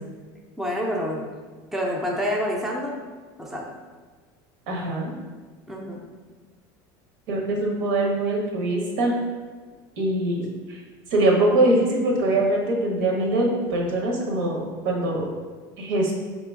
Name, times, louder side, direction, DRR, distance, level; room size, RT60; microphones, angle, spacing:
voice 1, 0.6-1.3 1.7-2.9 3.4-3.7 5.7-6.0, equal, 5° right, -2 dB, 0.4 m, -27 dB
voice 2, 4.7-5.1 7.3-9.1 10.0-10.8 11.1-15.3 15.8-16.1, right 1 dB, 80° right, 0 dB, 1.0 m, -23 dB
4.1 x 2.9 x 3.5 m, 1.4 s
cardioid pair, 165°, 10 cm